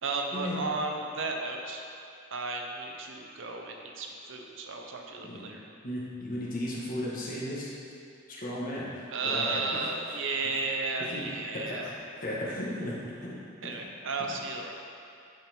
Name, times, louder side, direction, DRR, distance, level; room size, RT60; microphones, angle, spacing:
voice 1, 0.0-1.8 2.3-5.6 9.1-11.9 13.6-14.7, right 3 dB, 65° right, 2 dB, 0.8 m, -33 dB
voice 2, 5.8-7.7 8.3-9.6 11.0-13.4, left 1 dB, 45° left, -6 dB, 1.4 m, -35 dB
8.8 x 4.4 x 4.3 m, 2.5 s
head